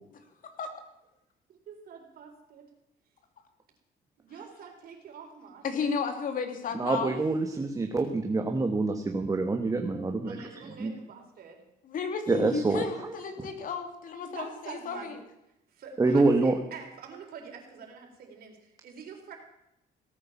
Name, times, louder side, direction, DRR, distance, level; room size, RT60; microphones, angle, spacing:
voice 1, 1.5-2.7 4.2-5.7 10.2-11.6 14.3-15.2 15.7-19.3, right 6 dB, 60° right, 2 dB, 4.3 m, -45 dB
voice 2, 5.6-7.2 11.9-15.2, left 5 dB, 55° left, 6 dB, 2.7 m, -33 dB
voice 3, 6.7-10.4 10.8-10.9 12.3-13.1 16.0-16.5, right 3 dB, 20° right, 4 dB, 1.4 m, -26 dB
17.5 x 9.1 x 7.2 m, 0.84 s
cardioid pair, 110°, 17 cm